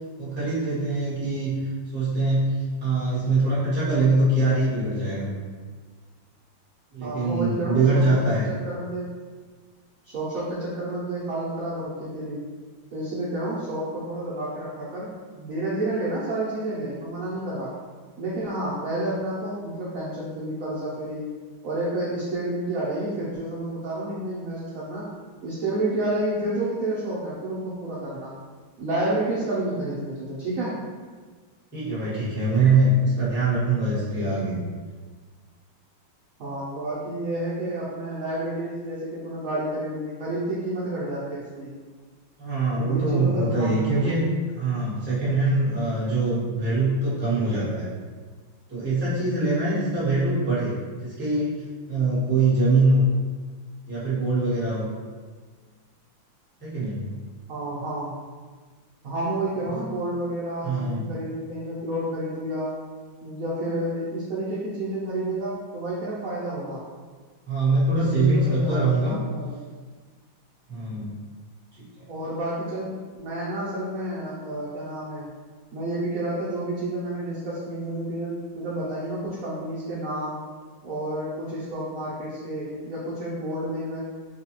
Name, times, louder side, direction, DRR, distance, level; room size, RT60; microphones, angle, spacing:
voice 1, 0.2-2.5 2.8-5.3 6.9-8.4 31.7-34.6 42.4-44.3 44.6-47.9 48.7-51.6 51.9-53.1 53.9-54.9 56.6-57.0 60.6-61.1 67.5-69.1 70.7-71.1, right 2 dB, 10° right, -10 dB, 0.8 m, -23 dB
voice 2, 7.0-9.0 10.0-12.4 12.9-17.7 18.2-21.3 21.6-25.0 25.4-28.3 28.8-30.7 36.4-41.7 42.8-44.2 57.5-58.1 59.0-62.7 63.2-66.8 68.0-69.5 72.1-75.3 75.7-80.4 80.8-84.0, right 1 dB, 65° right, -8 dB, 0.8 m, -30 dB
4.7 x 2.3 x 2.9 m, 1.5 s
omnidirectional pair, 2.3 m